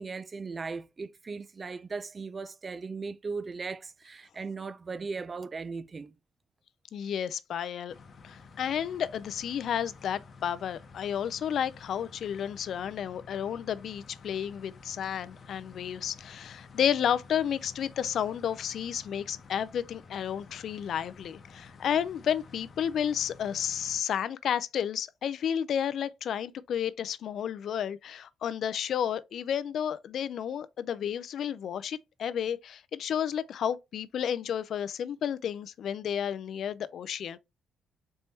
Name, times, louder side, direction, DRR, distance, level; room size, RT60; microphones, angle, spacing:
voice 1, 0.0-6.1, right 4 dB, 35° right, 0.4 m, -38 dB
voice 2, 6.9-7.9 8.2-37.4, left 9 dB, 65° left, 0.4 m, -32 dB
sound 1, 7.9-24.0, left 4 dB, 50° left, 0.9 m, -52 dB
4.3 x 3.4 x 2.7 m
cardioid pair, 90°, 0 cm